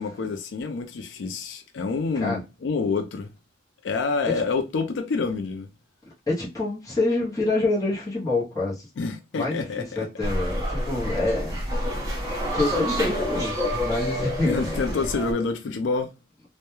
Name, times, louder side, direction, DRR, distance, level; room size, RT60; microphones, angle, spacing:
voice 1, 0.0-3.3 3.8-5.7 9.0-10.1 14.4-16.1, left 4 dB, 75° left, 0.4 m, -27 dB
voice 2, 6.3-8.9 9.3-11.6 12.5-14.8, left 2 dB, 20° left, 0.7 m, -27 dB
sound 1, 10.2-15.3, equal, 20° right, 0.7 m, -28 dB
2.2 x 2.1 x 2.9 m
head